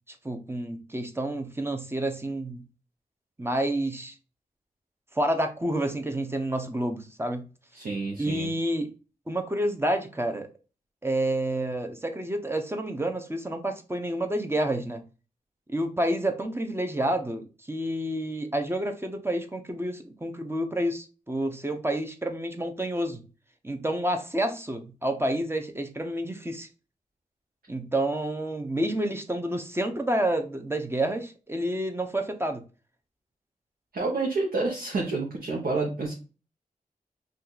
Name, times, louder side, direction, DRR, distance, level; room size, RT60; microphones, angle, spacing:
voice 1, 0.1-2.6 3.4-4.2 5.1-7.5 8.2-8.9 9.3-10.5 11.0-15.0 15.7-23.3 23.6-26.7 27.7-32.6, right 1 dB, 15° right, 0.7 m, -29 dB
voice 2, 7.7-8.5 33.9-36.1, right 3 dB, 70° right, 0.9 m, -29 dB
2.7 x 2.4 x 3.8 m
cardioid pair, 55°, 15 cm